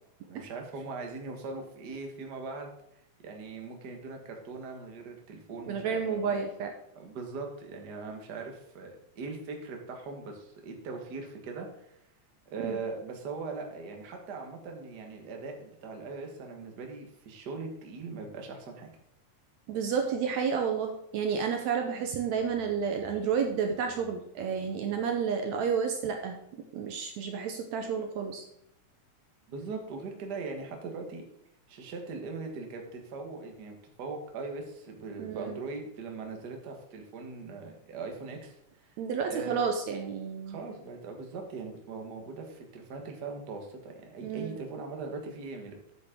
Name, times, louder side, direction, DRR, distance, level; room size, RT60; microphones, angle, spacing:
voice 1, 0.3-2.7 3.2-6.4 6.9-11.9 12.5-18.9 29.5-31.2 31.7-38.6 38.9-39.0 39.3-39.6 40.5-46.0, right 4 dB, 45° right, 3 dB, 1.5 m, -40 dB
voice 2, 5.7-6.7 12.6-12.8 19.7-28.4 35.2-35.6 39.0-40.6 44.2-44.6, right 6 dB, 75° right, 4 dB, 2.0 m, -31 dB
8.5 x 8.3 x 3.7 m, 0.80 s
omnidirectional pair, 3.6 m